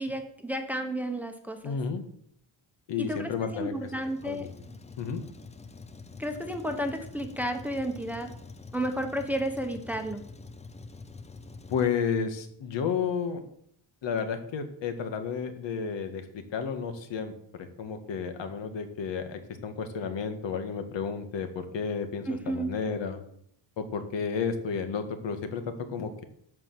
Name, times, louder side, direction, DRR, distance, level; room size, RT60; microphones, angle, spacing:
voice 1, 0.0-1.8 3.0-4.5 6.2-8.3 8.7-10.2 22.3-22.8, right 1 dB, 5° right, 5 dB, 1.0 m, -32 dB
voice 2, 1.6-2.0 2.9-3.7 4.2-4.5 5.0-5.2 11.7-13.4 14.0-17.3 17.6-23.2 23.8-26.2, left 6 dB, 70° left, 7 dB, 1.8 m, -32 dB
Truck, 3.1-11.8, left 3 dB, 15° left, 0.6 m, -46 dB
12.5 x 4.9 x 7.8 m, 0.69 s
cardioid pair, 145°, 45 cm